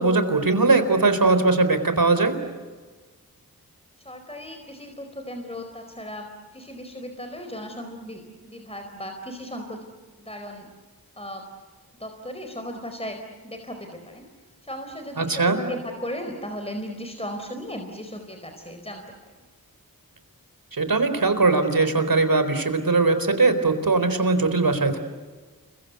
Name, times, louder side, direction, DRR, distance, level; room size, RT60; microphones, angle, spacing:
voice 1, 0.0-2.4 15.2-15.6 20.7-25.0, right 3 dB, 65° right, 10 dB, 4.1 m, -20 dB
voice 2, 4.0-6.2 6.5-9.8 10.2-10.7 11.2-11.4 12.0-13.2 13.4-14.3 14.6-19.0, equal, 15° left, 5 dB, 4.4 m, -36 dB
29.5 x 24.0 x 8.3 m, 1.3 s
cardioid pair, 45°, 37 cm